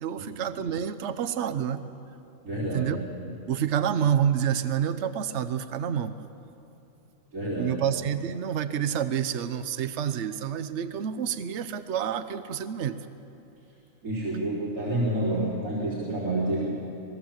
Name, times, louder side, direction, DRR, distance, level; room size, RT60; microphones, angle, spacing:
voice 1, 0.0-1.9 2.7-3.0 3.5-6.2 7.6-13.0, right 9 dB, 60° right, 11 dB, 1.1 m, -28 dB
voice 2, 2.4-3.0 7.3-7.8 14.0-16.7, right 1 dB, 80° right, -7 dB, 4.3 m, -28 dB
26.5 x 19.5 x 7.4 m, 2.8 s
omnidirectional pair, 1.4 m